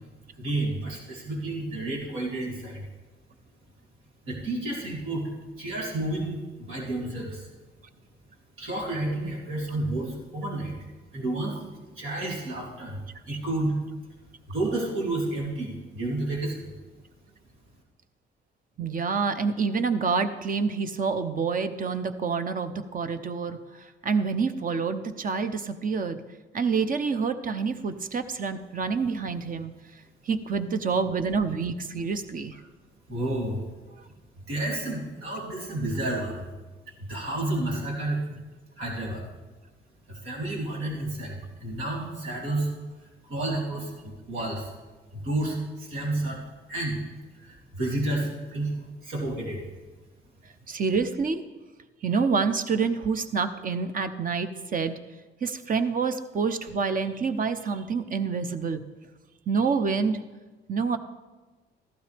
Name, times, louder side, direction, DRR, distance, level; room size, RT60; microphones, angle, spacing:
voice 1, 0.4-2.9 4.3-5.2 5.6-7.5 8.6-10.7 11.1-11.5 11.9-13.0 13.3-13.8 14.5-16.6 33.1-33.6 34.5-36.5 37.1-38.4 38.8-39.2 40.1-42.7 43.3-44.7 45.1-46.4 46.7-47.0 47.4-48.8 49.0-49.6, right 2 dB, 85° right, -3 dB, 3.1 m, -30 dB
voice 2, 18.8-26.2 26.5-32.6 50.7-51.4 52.0-55.0 55.4-58.8 59.5-60.2 60.7-61.0, right 5 dB, 45° right, 10 dB, 0.8 m, -27 dB
14.0 x 12.0 x 3.4 m, 1.3 s
cardioid pair, 90°, 20 cm